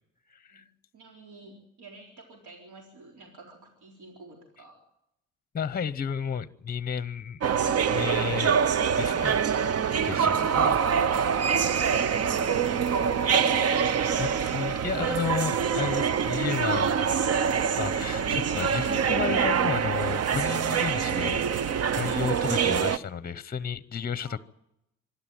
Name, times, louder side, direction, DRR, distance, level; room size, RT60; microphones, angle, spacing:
voice 1, 0.3-0.6 5.5-7.4 7.9-8.6 9.0-9.4 10.0-10.8 14.2-17.0 17.8-21.5 21.9-24.4, left 7 dB, 30° left, 0.8 m, -32 dB
voice 2, 0.9-4.8 11.9-14.0 24.2-24.4, right 2 dB, 80° right, 4.0 m, -50 dB
sound 1, 7.4-23.0, right 7 dB, 55° right, 0.9 m, -25 dB
25.5 x 11.5 x 9.1 m
cardioid pair, 90°, 30 cm